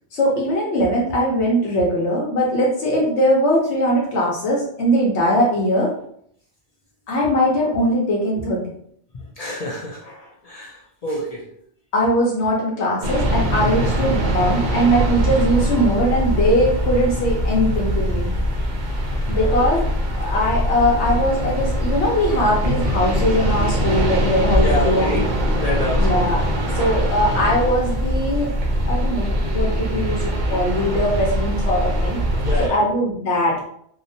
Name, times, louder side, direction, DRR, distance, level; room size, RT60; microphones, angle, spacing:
voice 1, 0.1-5.9 7.1-8.6 11.9-18.3 19.3-19.9 20.2-25.2 26.0-26.4 26.7-28.5 28.9-32.2 32.6-33.5, equal, 80° left, -3 dB, 1.0 m, -20 dB
voice 2, 9.1-11.5 19.3-19.7 24.6-25.2 25.6-26.2 32.4-32.8, left 1 dB, 55° left, -3 dB, 0.4 m, -28 dB
sound 1, 13.0-32.7, equal, 55° right, 0.5 m, -22 dB
2.8 x 2.1 x 2.6 m, 0.66 s
omnidirectional pair, 1.1 m